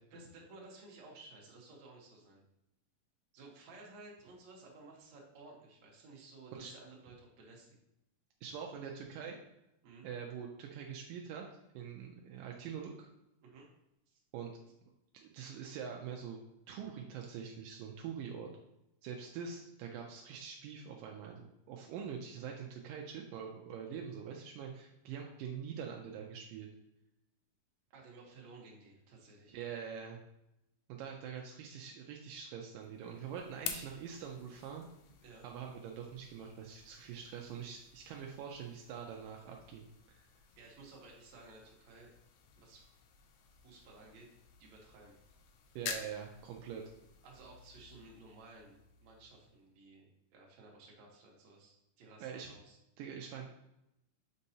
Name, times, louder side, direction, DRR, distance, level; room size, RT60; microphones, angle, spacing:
voice 1, 0.1-2.4 3.3-7.8 9.8-10.1 13.4-13.7 14.1-14.2 27.9-29.6 33.2-33.3 35.2-35.5 40.6-42.1 42.6-42.9 43.6-44.3 44.6-45.1 47.2-52.8, right 3 dB, 60° right, -2 dB, 2.3 m, -55 dB
voice 2, 8.4-9.4 10.0-11.5 11.7-13.1 14.3-14.5 14.8-16.4 16.7-18.5 19.0-26.7 29.5-30.2 30.9-34.9 35.4-40.2 45.8-46.8 52.2-52.5 53.0-53.5, right 7 dB, 80° right, 1 dB, 2.2 m, -44 dB
sound 1, 32.8-49.7, left 7 dB, 80° left, 1.7 m, -50 dB
6.6 x 5.3 x 2.8 m, 0.87 s
omnidirectional pair, 3.9 m